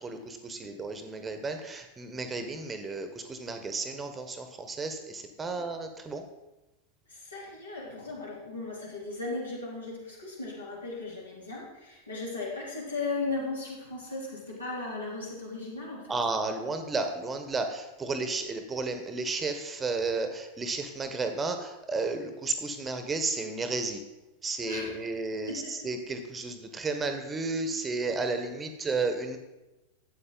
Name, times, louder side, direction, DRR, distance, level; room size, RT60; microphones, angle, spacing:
voice 1, 0.0-6.2 16.1-24.0 24.4-25.5 25.8-29.4, right 3 dB, 15° right, 7 dB, 1.0 m, -33 dB
voice 2, 7.1-16.3 24.6-25.2 25.5-25.9, left 3 dB, 75° left, -4 dB, 3.2 m, -37 dB
12.0 x 8.3 x 3.9 m, 1.0 s
figure-of-eight pair, 90°, 0 cm